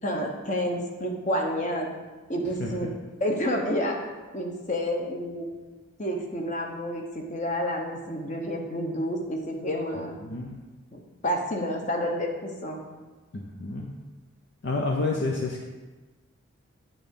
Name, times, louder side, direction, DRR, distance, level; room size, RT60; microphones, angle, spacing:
voice 1, 0.0-1.9 2.3-2.9 3.2-4.0 4.3-5.5 6.0-10.2 10.9-12.8, equal, 35° left, 1 dB, 1.1 m, -29 dB
voice 2, 2.4-2.9 10.2-10.6 13.3-13.9 14.6-15.6, left 3 dB, 55° left, 0 dB, 0.7 m, -30 dB
8.9 x 3.9 x 7.0 m, 1.2 s
head